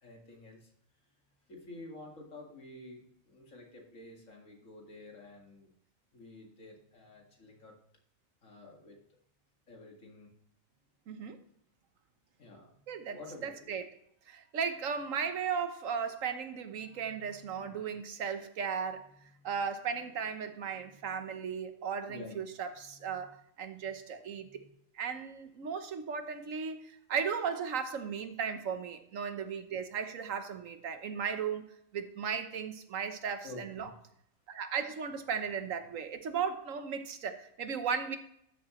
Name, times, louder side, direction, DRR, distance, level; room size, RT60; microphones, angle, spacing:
voice 1, 0.0-0.7 1.5-5.7 6.1-7.7 8.4-9.0 9.7-10.4 12.4-13.7 16.8-18.0 19.0-19.5 20.7-21.1 22.1-22.4 22.7-23.3 23.8-23.9 24.4-24.7 33.4-34.0, left 2 dB, 75° left, 0 dB, 2.4 m, -51 dB
voice 2, 11.1-11.4 12.9-13.9 14.3-19.1 19.4-24.4 24.9-31.6 31.9-33.9 34.5-38.2, right 6 dB, 75° right, 8 dB, 1.4 m, -36 dB
12.5 x 7.6 x 3.1 m, 0.73 s
omnidirectional pair, 1.4 m